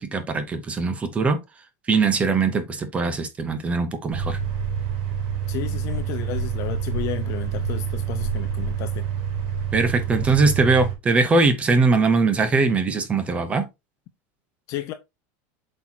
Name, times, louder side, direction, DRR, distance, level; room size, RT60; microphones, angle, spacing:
voice 1, 0.0-1.4 1.9-4.4 9.7-13.6, right 3 dB, 15° right, 0.9 m, -21 dB
sound 1, 4.1-11.0, right 8 dB, 65° right, 3.2 m, -27 dB
voice 2, 5.5-9.1 14.7-14.9, left 13 dB, 40° left, 0.6 m, -32 dB
7.8 x 4.5 x 2.9 m
supercardioid pair, 170°, 8 cm